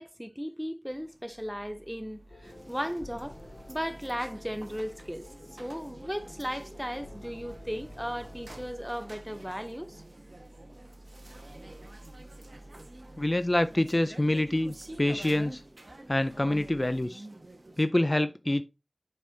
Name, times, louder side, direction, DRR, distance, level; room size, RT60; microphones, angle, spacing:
voice 1, 0.0-3.4 3.7-10.0, equal, ahead, 0.6 m, -36 dB
sound 1, 0.9-17.0, right 1 dB, 30° right, 1.6 m, -53 dB
sound 2, 2.3-8.8, left 2 dB, 75° left, 0.9 m, -51 dB
sound 3, 2.4-17.8, right 1 dB, 60° right, 1.1 m, -49 dB
voice 2, 13.2-15.6 16.1-17.2 17.8-18.6, left 1 dB, 35° left, 0.4 m, -26 dB
7.5 x 5.4 x 2.7 m
wide cardioid pair, 50°, 0 cm